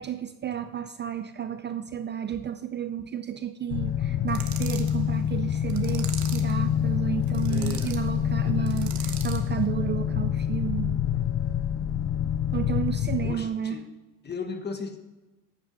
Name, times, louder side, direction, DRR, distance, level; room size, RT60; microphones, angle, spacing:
voice 1, 0.0-11.0 12.5-13.8, right 9 dB, 30° right, 10 dB, 0.5 m, -32 dB
sound 1, 3.7-13.4, left 10 dB, 50° left, 0.7 m, -27 dB
sound 2, 4.3-5.0 5.7-6.6 7.2-8.0 8.7-9.5, right 9 dB, 50° right, 1.5 m, -40 dB
voice 2, 7.5-7.9 8.4-8.8 12.5-12.6 13.2-13.8 14.2-15.0, left 4 dB, 30° left, 7 dB, 1.4 m, -36 dB
11.0 x 8.8 x 5.2 m, 1.1 s
cardioid pair, 115°, 35 cm